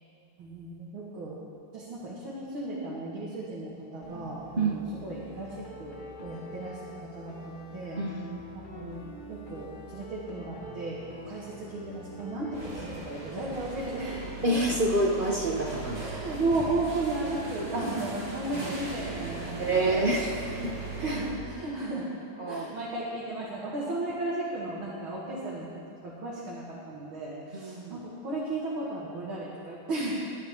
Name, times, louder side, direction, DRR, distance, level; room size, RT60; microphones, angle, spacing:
voice 1, 0.4-1.4 1.7-6.8 7.1-8.0 8.5-9.0 9.3-14.3 15.9-20.0 21.0-22.1 22.5-25.7 26.0-30.2, right 2 dB, 80° right, -7 dB, 2.7 m, -34 dB
sound 1, 4.0-12.8, left 1 dB, 30° left, 1.1 m, -46 dB
voice 2, 8.0-8.4 14.4-16.0 19.6-20.7 21.0-21.2 22.4-22.6 27.5-28.0, right 2 dB, 65° right, 0 dB, 0.5 m, -28 dB
sound 2, 12.5-21.3, right 3 dB, 20° right, 2.2 m, -38 dB
22.0 x 9.5 x 3.7 m, 2.8 s
omnidirectional pair, 2.2 m